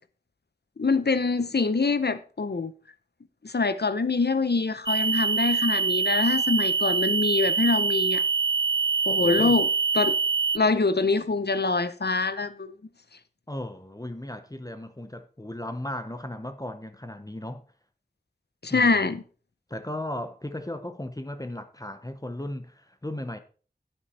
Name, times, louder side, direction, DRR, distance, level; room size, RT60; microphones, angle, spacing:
voice 1, 0.8-2.7 3.4-8.2 9.1-9.7 9.9-10.1 10.5-12.7 18.6-19.2, left 3 dB, 70° left, 0.8 m, -24 dB
sound 1, 4.9-10.6, right 5 dB, 25° right, 0.4 m, -25 dB
voice 2, 9.1-9.6 13.5-17.6 18.7-19.1 19.7-23.4, left 1 dB, 20° left, 0.8 m, -36 dB
9.2 x 8.9 x 4.2 m
wide cardioid pair, 45°, 18 cm